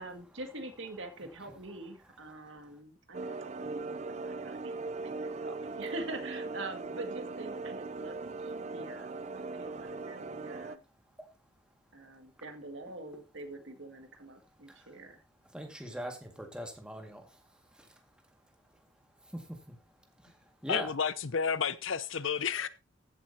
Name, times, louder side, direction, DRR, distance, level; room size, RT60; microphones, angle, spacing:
voice 1, 0.0-9.1 9.3-10.8 11.9-15.2, right 2 dB, 65° right, 2.0 m, -45 dB
sound 1, 3.1-10.8, right 3 dB, 35° right, 0.5 m, -39 dB
voice 2, 15.5-16.1 16.5-17.2 20.6-20.9, right 1 dB, 5° right, 1.9 m, -39 dB
voice 3, 20.7-22.7, left 6 dB, 75° left, 0.7 m, -31 dB
15.5 x 7.7 x 2.8 m
head